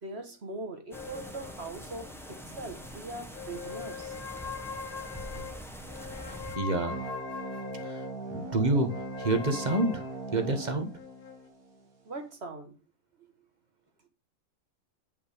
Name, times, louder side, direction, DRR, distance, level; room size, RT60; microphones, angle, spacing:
voice 1, 0.0-4.2 12.1-12.7, right 2 dB, 45° right, 6 dB, 1.8 m, -41 dB
sound 1, 0.9-3.0 3.3-8.2 8.9-11.5, left 6 dB, 90° left, 2.1 m, -42 dB
sound 2, 0.9-6.6, equal, ahead, 1.3 m, -44 dB
voice 2, 6.5-7.0 7.8-8.0 8.3-8.9 9.2-10.0 10.3-10.9, right 2 dB, 30° right, 6 dB, 1.4 m, -28 dB
sound 3, 6.9-11.9, right 2 dB, 80° right, 2.3 m, -40 dB
8.8 x 5.5 x 5.1 m, 0.32 s
omnidirectional pair, 1.5 m